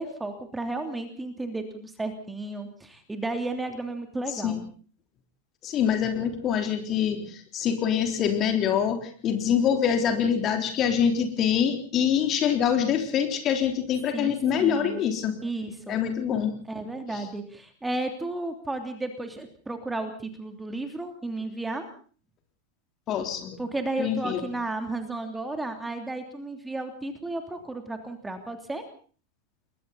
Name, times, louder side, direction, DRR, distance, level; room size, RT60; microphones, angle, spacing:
voice 1, 0.0-4.7 14.1-15.0 15.4-16.0 16.7-21.9 23.6-28.8, right 2 dB, 10° right, 6 dB, 3.0 m, -33 dB
voice 2, 5.6-15.3 15.9-16.6 17.1-17.2 23.1-23.6 24.0-24.5, left 8 dB, 30° left, 5 dB, 3.6 m, -25 dB
29.5 x 22.0 x 4.1 m, 0.43 s
figure-of-eight pair, 90°, 0 cm